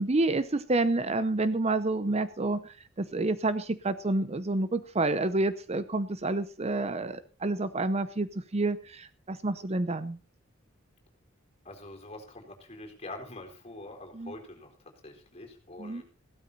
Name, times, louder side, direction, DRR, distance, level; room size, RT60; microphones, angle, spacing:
voice 1, 0.0-10.2 14.1-14.3 15.8-16.0, right 2 dB, 30° right, 13 dB, 0.7 m, -29 dB
voice 2, 11.6-16.0, left 2 dB, 30° left, 3 dB, 4.3 m, -45 dB
16.0 x 12.5 x 4.2 m, 0.35 s
head